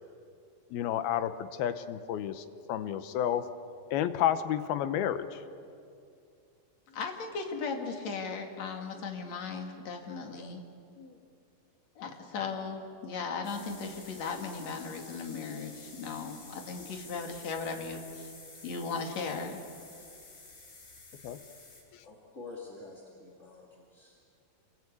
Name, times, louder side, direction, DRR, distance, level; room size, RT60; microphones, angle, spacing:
voice 1, 0.7-3.5 3.9-5.4 21.2-21.4, left 10 dB, 85° left, 11 dB, 2.9 m, -31 dB
voice 2, 6.9-10.6 10.9-11.2 12.0-18.3 18.6-19.6, left 4 dB, 50° left, 3 dB, 3.3 m, -37 dB
sound 1, 13.4-21.8, left 3 dB, 65° left, 6.7 m, -51 dB
voice 3, 21.8-24.2, left 3 dB, 25° left, -2 dB, 2.0 m, -48 dB
28.5 x 21.5 x 8.5 m, 2.4 s
omnidirectional pair, 4.3 m